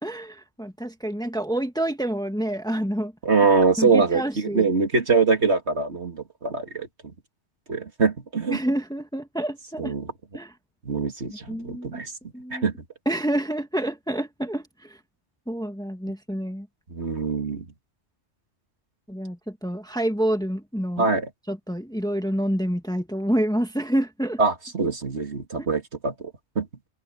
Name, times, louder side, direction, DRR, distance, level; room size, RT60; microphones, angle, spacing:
voice 1, 0.0-3.1 3.8-4.6 8.5-9.9 10.3-10.5 11.3-12.0 12.3-12.7 13.0-15.0 15.5-16.7 19.1-21.1 21.5-24.4 25.6-25.7, right 1 dB, 5° left, 1.7 m, -28 dB
voice 2, 3.2-7.1 7.7-8.6 9.8-10.1 10.8-12.1 12.5-12.7 16.9-17.6 21.0-21.3 24.4-26.7, right 4 dB, 65° right, 2.8 m, -23 dB
open air
omnidirectional pair, 1.2 m